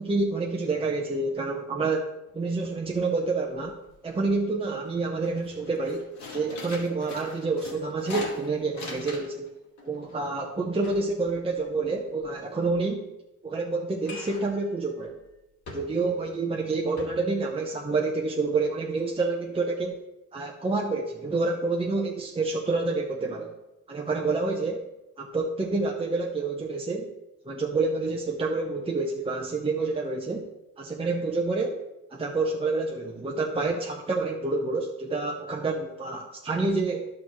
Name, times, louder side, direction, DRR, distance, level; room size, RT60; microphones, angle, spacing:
voice 1, 0.0-2.1 2.3-3.8 4.0-9.5 9.8-13.1 13.4-15.2 15.7-20.0 20.3-23.5 23.9-24.9 25.2-27.1 27.4-30.5 30.8-31.8 32.1-37.1, right 3 dB, 20° right, 0 dB, 0.8 m, -28 dB
sound 1, 2.3-2.4 2.6-3.2 3.5-4.3 4.7-4.9 5.2-9.5 9.8-12.2 14.0-14.6 15.0-15.1 15.7-16.2 16.6-16.7 17.0-17.1, left 3 dB, 65° left, 2.3 m, -41 dB
11.0 x 6.0 x 3.1 m, 0.97 s
cardioid pair, 90°, 30 cm